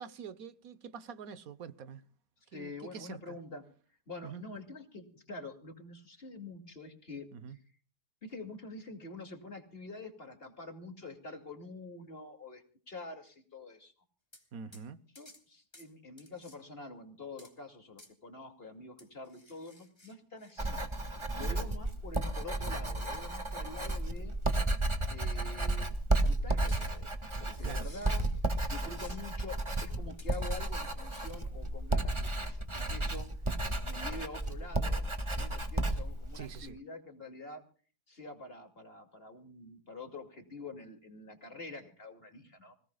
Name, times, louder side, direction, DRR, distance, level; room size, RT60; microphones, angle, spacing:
voice 1, 0.0-2.1 2.5-3.4 4.2-4.4 7.3-7.6 14.5-15.0 21.4-21.7 27.6-27.9 36.3-36.8, right 6 dB, 65° right, 1.4 m, -45 dB
voice 2, 2.5-3.6 4.1-7.6 8.2-13.9 15.2-20.8 21.1-24.4 25.1-27.1 27.4-28.2 28.7-33.3 33.8-35.1 35.3-37.6 38.1-42.8, left 3 dB, 35° left, 2.8 m, -46 dB
sound 1, 14.3-14.5 14.7-14.9 15.2-15.4 15.7-15.9 16.2-16.6 17.4-17.6 18.0-18.1 19.0-21.2 21.6-21.7 23.8-24.2 24.5-24.6 26.7-28.7 28.9-29.3 30.2-30.8, left 1 dB, 15° left, 2.8 m, -58 dB
Writing, 20.6-36.7, right 2 dB, 20° right, 1.7 m, -33 dB
27.5 x 18.5 x 2.3 m
omnidirectional pair, 1.7 m